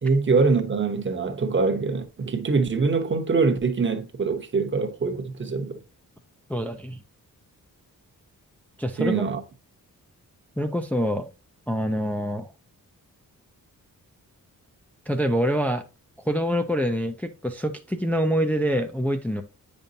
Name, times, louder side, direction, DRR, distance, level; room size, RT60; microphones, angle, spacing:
voice 1, 0.0-5.7 9.0-9.4, right 4 dB, 35° right, 0.9 m, -23 dB
voice 2, 6.5-7.0 8.8-9.2 10.6-11.3 11.7-12.5 15.1-15.8 16.2-19.4, equal, 5° left, 0.4 m, -25 dB
9.0 x 5.3 x 2.7 m
wide cardioid pair, 170°, 34 cm